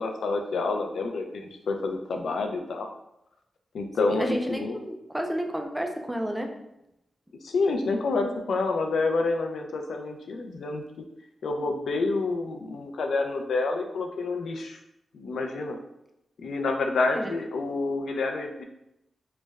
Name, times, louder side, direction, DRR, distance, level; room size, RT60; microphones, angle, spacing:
voice 1, 0.0-2.9 3.7-4.8 7.4-10.8 11.4-14.8 15.1-15.8 16.4-18.6, left 3 dB, 85° left, 4 dB, 0.4 m, -28 dB
voice 2, 4.0-6.5 17.1-17.3, equal, 5° right, 3 dB, 0.3 m, -31 dB
3.2 x 2.0 x 3.4 m, 0.84 s
wide cardioid pair, 155°, 0 cm